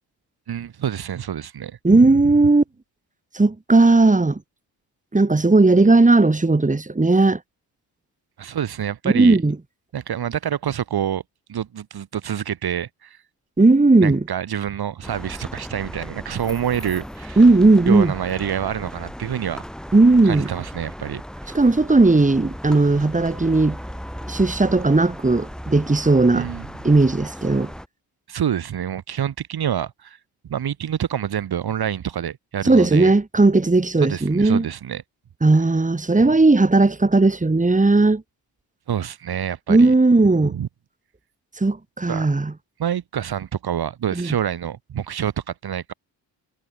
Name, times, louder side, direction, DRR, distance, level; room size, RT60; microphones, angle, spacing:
voice 1, 0.5-2.1 8.4-9.4 9.9-11.2 11.5-13.2 14.0-17.4 17.9-19.6 20.2-21.2 26.3-26.7 28.3-30.2 30.4-33.1 34.0-35.0 38.9-39.9 40.4-40.7 42.1-42.3 42.8-45.9, right 9 dB, 60° right, 4.1 m, -27 dB
voice 2, 1.8-2.6 3.3-4.4 5.1-7.4 9.1-9.6 13.6-14.2 17.4-18.1 19.9-20.5 21.5-23.8 24.3-26.5 26.8-27.7 32.6-34.7 35.4-38.2 39.7-40.5 41.6-42.5 44.1-44.3, right 3 dB, 15° right, 3.4 m, -16 dB
sound 1, 15.0-27.9, equal, ahead, 7.4 m, -36 dB
supercardioid pair, 65°, 42 cm